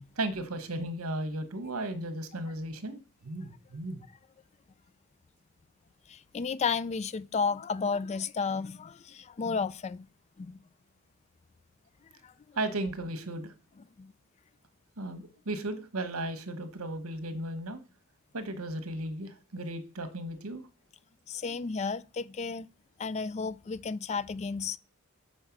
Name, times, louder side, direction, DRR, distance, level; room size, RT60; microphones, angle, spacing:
voice 1, 0.2-4.0 12.6-13.5 15.0-17.8 18.3-20.6, right 1 dB, 85° right, 1.2 m, -35 dB
voice 2, 6.1-10.1 10.4-10.6 12.2-12.6 14.0-14.1 21.3-22.7 23.0-24.8, left 5 dB, 30° left, 0.3 m, -33 dB
6.4 x 4.4 x 5.9 m
head